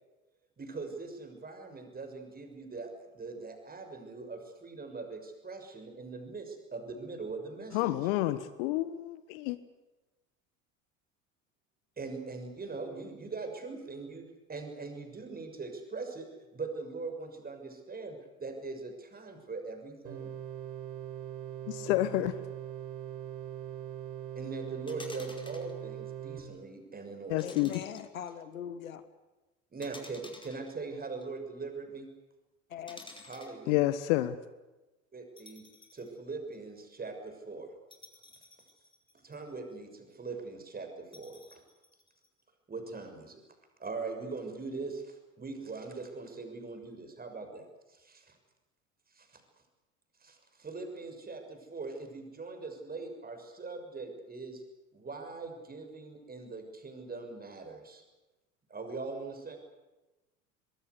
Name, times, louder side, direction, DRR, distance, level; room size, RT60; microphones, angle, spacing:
voice 1, 0.6-7.9 12.0-14.2 14.5-20.3 24.3-27.6 29.7-32.1 33.2-33.8 35.1-35.6 35.9-37.7 39.2-41.6 42.7-43.4 43.8-48.4 49.1-49.4 50.2-54.6 54.9-58.0 58.7-59.6, right 3 dB, 20° right, 6.8 m, -41 dB
voice 2, 7.7-9.6 21.7-22.4 27.3-27.8 33.7-34.4, left 16 dB, 60° left, 1.3 m, -29 dB
sound 1, 20.0-26.4, right 10 dB, 60° right, 6.3 m, -41 dB
sound 2, 24.9-25.7 27.4-28.3 29.8-31.2 32.9-33.6 35.4-36.1 36.5-36.6 37.9-39.5 41.1-42.3, left 2 dB, 10° left, 5.1 m, -52 dB
voice 3, 27.4-29.0 32.7-33.0, left 8 dB, 75° left, 1.8 m, -41 dB
24.0 x 22.0 x 8.3 m
figure-of-eight pair, 70°, 41 cm